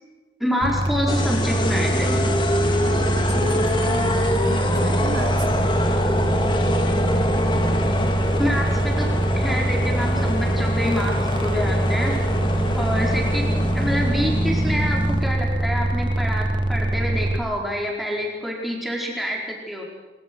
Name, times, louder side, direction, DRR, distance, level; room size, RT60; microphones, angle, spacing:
voice 1, 0.4-2.2 8.4-9.1 9.4-12.1 12.7-19.8, equal, ahead, -2 dB, 4.8 m, -27 dB
sound 1, 0.6-17.4, right 1 dB, 25° right, 1.7 m, -23 dB
sound 2, 1.1-15.3, left 1 dB, 25° left, 2.2 m, -25 dB
voice 2, 2.8-5.7, right 2 dB, 85° right, 4 dB, 2.9 m, -34 dB
23.0 x 22.0 x 6.3 m, 1.3 s
head